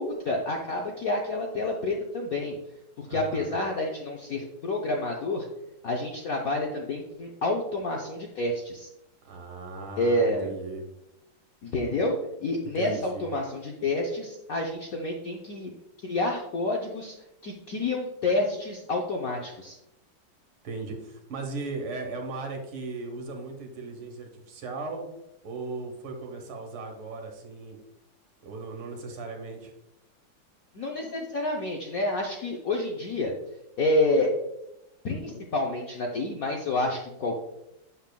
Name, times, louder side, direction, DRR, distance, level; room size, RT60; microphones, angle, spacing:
voice 1, 0.0-2.6 3.0-5.5 5.8-8.9 10.0-10.5 11.6-15.7 16.0-17.1 17.4-19.8 30.7-33.3 33.8-34.3 35.0-37.4, left 2 dB, 65° left, 0 dB, 0.8 m, -28 dB
voice 2, 3.1-3.5 9.3-10.8 12.8-13.3 20.6-25.1 25.4-27.8 28.4-29.7, right 3 dB, 75° right, 3 dB, 2.0 m, -37 dB
7.4 x 7.1 x 2.2 m, 0.87 s
omnidirectional pair, 2.4 m